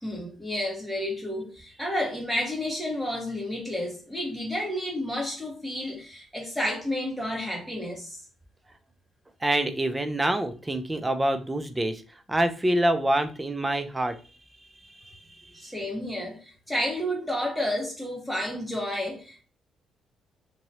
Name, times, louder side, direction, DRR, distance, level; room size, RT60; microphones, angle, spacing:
voice 1, 0.0-8.2 15.5-19.4, left 1 dB, ahead, 1.5 m, -31 dB
voice 2, 9.4-12.0 12.3-14.2 14.8-15.7, right 1 dB, 15° right, 0.5 m, -26 dB
3.0 x 2.8 x 2.8 m
cardioid pair, 90°, 0 cm